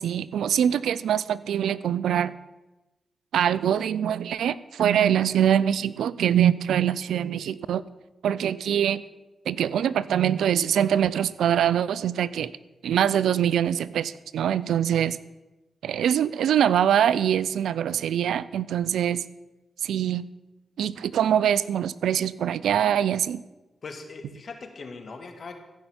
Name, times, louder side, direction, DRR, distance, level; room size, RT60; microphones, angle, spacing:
voice 1, 0.0-2.3 3.3-7.8 8.2-9.0 9.5-12.5 12.8-15.2 15.8-19.2 19.8-20.2 20.8-23.4, right 9 dB, 85° right, 19 dB, 0.4 m, -23 dB
voice 2, 23.8-25.6, left 4 dB, 60° left, 6 dB, 2.0 m, -40 dB
14.5 x 5.7 x 8.8 m, 1.1 s
cardioid pair, 50°, 0 cm